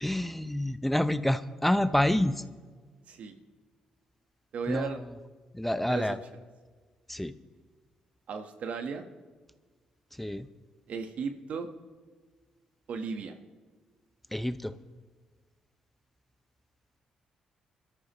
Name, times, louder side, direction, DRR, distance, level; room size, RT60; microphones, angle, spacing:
voice 1, 0.0-2.4 4.7-5.0 5.5-6.2 7.1-7.3 10.2-10.5 14.3-14.7, left 1 dB, 5° left, 12 dB, 0.7 m, -28 dB
voice 2, 4.5-5.0 5.9-6.2 8.3-9.1 10.9-11.7 12.9-13.4, right 5 dB, 65° right, 7 dB, 1.2 m, -35 dB
22.5 x 13.5 x 3.0 m, 1.4 s
supercardioid pair, 60°, 2 cm